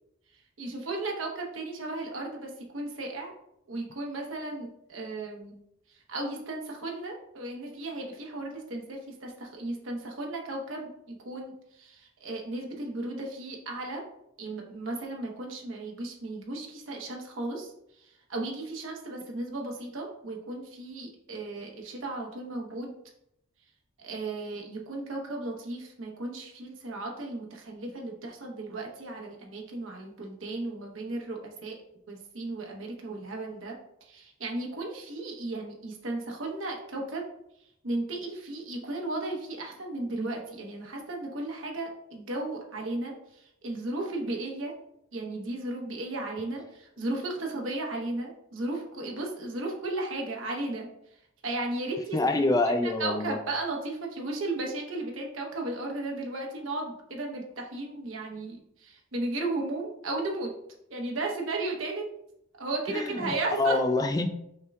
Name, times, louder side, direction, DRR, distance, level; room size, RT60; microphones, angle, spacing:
voice 1, 0.6-3.3 3.7-5.6 5.9-14.0 14.4-17.7 18.0-22.9 24.0-31.8 32.1-33.8 34.0-37.2 37.8-44.7 45.1-50.9 51.4-52.4 52.8-60.5 60.9-62.0 62.6-63.8, right 2 dB, 80° right, 0 dB, 1.0 m, -35 dB
voice 2, 52.1-53.4 62.9-64.3, left 2 dB, 20° left, 7 dB, 0.3 m, -26 dB
5.5 x 2.3 x 3.4 m, 0.77 s
head